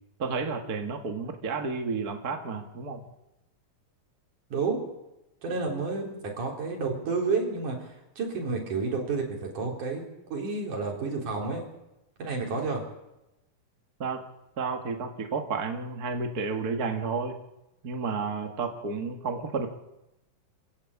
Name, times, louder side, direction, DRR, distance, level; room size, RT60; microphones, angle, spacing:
voice 1, 0.2-3.0 14.0-14.2 14.6-17.4 17.8-19.7, right 4 dB, 35° right, 4 dB, 1.8 m, -31 dB
voice 2, 5.4-10.1 10.3-11.7 12.2-12.8, right 4 dB, 60° right, 0 dB, 5.6 m, -30 dB
26.5 x 16.0 x 8.5 m, 0.93 s
omnidirectional pair, 4.0 m